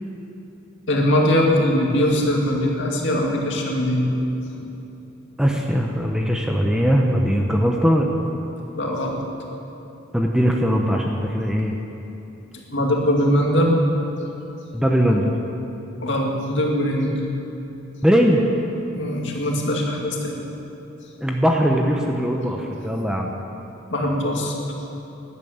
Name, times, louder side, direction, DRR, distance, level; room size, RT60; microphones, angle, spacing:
voice 1, 0.9-4.1 4.5-4.7 8.8-9.2 12.5-13.8 16.0-17.1 18.9-20.4 23.9-24.5, left 1 dB, 60° left, -1 dB, 2.3 m, -21 dB
voice 2, 5.4-8.1 10.1-11.8 14.7-15.3 18.0-18.5 21.2-23.3, equal, 5° right, 0 dB, 0.9 m, -20 dB
13.5 x 11.0 x 8.7 m, 3.0 s
head